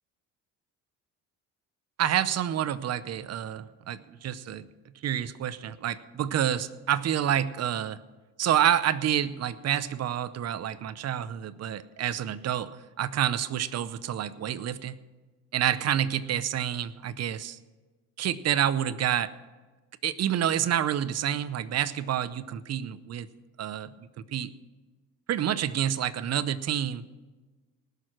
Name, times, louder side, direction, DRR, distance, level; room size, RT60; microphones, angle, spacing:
voice 1, 2.0-4.7 5.0-8.0 8.4-15.0 15.5-17.6 18.2-19.3 20.0-23.3 23.6-24.5 25.3-27.1, right 10 dB, 45° right, 16 dB, 0.7 m, -28 dB
19.0 x 6.6 x 6.1 m, 1.3 s
cardioid pair, 95°, 35 cm